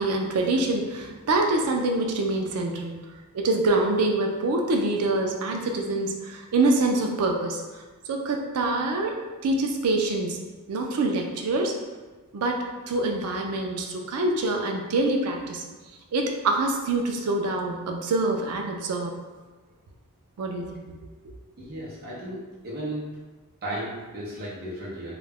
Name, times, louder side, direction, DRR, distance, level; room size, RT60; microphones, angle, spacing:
voice 1, 0.0-3.0 3.3-7.6 8.1-9.2 9.4-10.4 10.7-11.7 12.3-15.6 16.1-19.1 20.4-21.0, right 2 dB, 85° right, 2 dB, 0.4 m, -25 dB
voice 2, 21.6-23.1 23.6-25.2, right 1 dB, 45° right, -8 dB, 0.7 m, -35 dB
2.3 x 2.0 x 3.3 m, 1.3 s
head